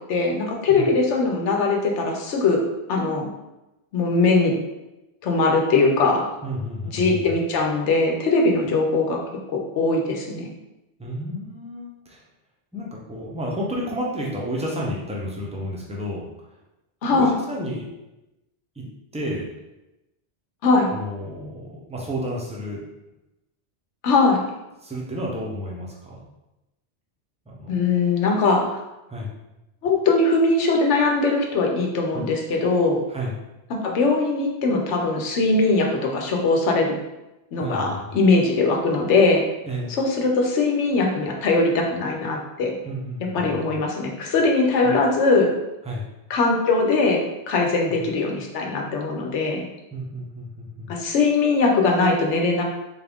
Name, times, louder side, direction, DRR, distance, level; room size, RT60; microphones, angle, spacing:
voice 1, 0.0-2.6 2.9-3.3 3.9-4.5 5.2-6.2 6.9-9.2 9.5-10.5 17.0-17.4 20.6-20.9 24.0-24.4 27.7-28.6 29.8-33.0 33.7-36.9 37.5-39.4 40.0-42.7 43.3-45.5 46.3-47.2 47.5-49.6 50.9-52.6, left 3 dB, 85° left, 1 dB, 1.0 m, -21 dB
voice 2, 6.4-7.4 11.0-12.2 12.7-16.2 17.1-17.9 18.8-18.9 19.1-19.6 20.9-22.8 24.8-26.2 27.5-27.8 29.1-29.3 32.1-32.3 33.1-33.4 37.6-38.2 39.6-40.0 42.8-43.8 44.8-44.9 45.8-46.0 47.9-48.1 49.9-50.9, equal, 10° right, -3 dB, 0.5 m, -31 dB
4.0 x 2.4 x 3.5 m, 0.97 s
omnidirectional pair, 1.2 m